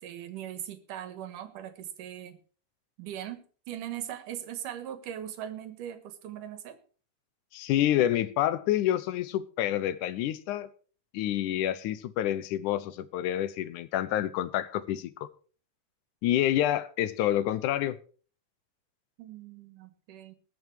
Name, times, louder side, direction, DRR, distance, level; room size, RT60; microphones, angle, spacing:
voice 1, 0.0-2.4 3.0-3.4 3.7-6.8 19.2-20.3, right 11 dB, 90° right, 2.9 m, -40 dB
voice 2, 7.5-10.7 11.1-15.3 16.2-18.0, left 12 dB, 80° left, 2.2 m, -28 dB
20.5 x 7.2 x 4.6 m
omnidirectional pair, 3.6 m